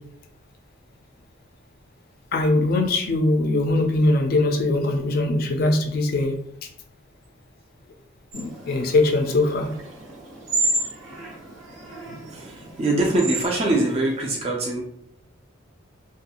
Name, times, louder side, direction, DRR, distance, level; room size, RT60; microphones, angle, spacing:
voice 1, 2.3-6.3 8.3-9.7, left 2 dB, 45° left, 5 dB, 0.3 m, -21 dB
sound 1, 8.3-14.3, right 2 dB, 85° right, 0.8 m, -31 dB
voice 2, 12.3-14.8, right 2 dB, 30° right, -1 dB, 0.4 m, -23 dB
2.5 x 2.3 x 2.8 m, 0.72 s
head